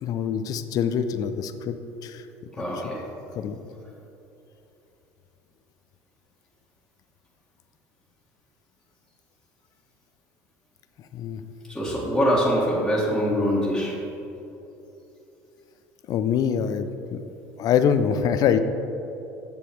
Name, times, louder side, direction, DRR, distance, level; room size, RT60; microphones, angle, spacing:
voice 1, 0.0-1.7 2.0-2.2 3.3-3.6 11.1-11.4 16.1-17.2 17.6-18.6, left 8 dB, 50° left, 10 dB, 0.5 m, -24 dB
voice 2, 2.5-3.0 11.7-13.9, equal, 5° left, -7 dB, 1.8 m, -23 dB
7.2 x 6.9 x 4.6 m, 3.0 s
hypercardioid pair, 85°, 8 cm